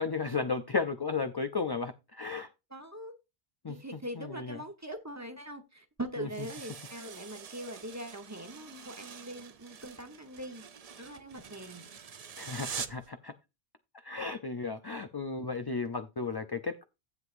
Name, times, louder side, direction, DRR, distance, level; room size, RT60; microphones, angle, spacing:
voice 1, 0.0-2.5 3.6-4.6 6.2-6.9 12.4-13.3 13.9-16.8, left 4 dB, 35° left, 9 dB, 0.4 m, -35 dB
voice 2, 2.7-3.1 3.7-10.6 11.0-11.9, right 1 dB, 15° right, 6 dB, 1.1 m, -42 dB
sound 1, 6.3-13.1, right 7 dB, 45° right, 0.6 m, -45 dB
12.0 x 8.0 x 2.6 m, 0.25 s
omnidirectional pair, 1.0 m